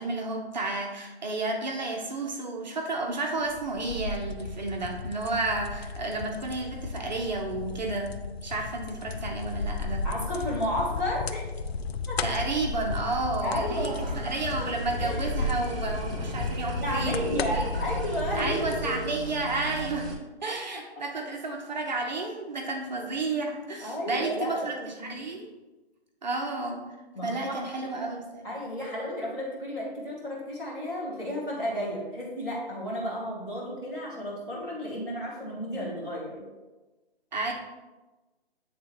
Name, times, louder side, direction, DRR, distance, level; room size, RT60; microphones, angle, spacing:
voice 1, 0.0-8.1 8.4-10.0 12.2-13.9 14.1-17.6 18.4-20.1 20.4-25.5 26.2-26.8 27.2-28.4 37.3-37.5, right 3 dB, 45° right, 1 dB, 0.8 m, -31 dB
sound 1, 3.4-18.9, left 4 dB, 75° left, 0.6 m, -34 dB
voice 2, 10.0-11.4 12.1-12.4 13.4-14.2 15.0-15.2 16.8-18.9 23.8-24.7 25.0-25.3 27.1-27.6 28.4-36.4, equal, 10° left, -9 dB, 1.2 m, -32 dB
sound 2, 13.3-20.1, right 3 dB, 60° right, 1.9 m, -37 dB
9.3 x 3.6 x 3.0 m, 1.2 s
hypercardioid pair, 165°, 32 cm